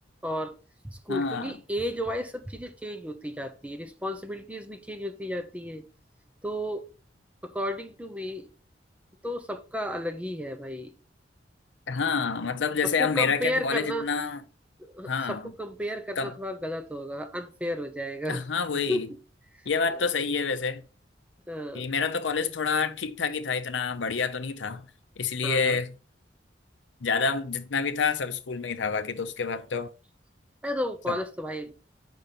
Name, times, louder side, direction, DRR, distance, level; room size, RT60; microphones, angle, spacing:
voice 1, 0.2-0.5 0.8-5.8 6.4-6.8 7.4-8.5 9.2-10.9 12.8-14.1 14.9-18.4 18.9-19.0 19.9-20.1 21.5-21.9 25.4-25.8 30.6-31.7, equal, 10° right, 0.8 m, -33 dB
voice 2, 1.1-1.5 11.9-14.4 15.1-15.5 16.2-16.3 18.3-19.1 19.6-20.8 21.7-24.9 25.2-25.9 27.0-29.9 31.1-31.2, left 5 dB, 85° left, 0.7 m, -28 dB
5.4 x 5.2 x 5.7 m
head